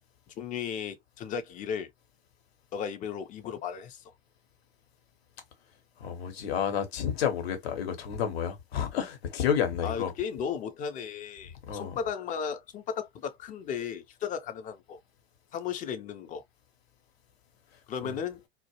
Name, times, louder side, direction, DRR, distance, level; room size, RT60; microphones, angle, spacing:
voice 1, 0.4-1.9 2.7-4.0 9.8-15.0 15.5-16.4 17.9-18.4, left 7 dB, 25° left, 0.4 m, -35 dB
voice 2, 6.0-10.1 11.7-11.9 18.0-18.2, left 8 dB, 70° left, 0.8 m, -30 dB
2.3 x 2.0 x 2.7 m
hypercardioid pair, 90°, 32 cm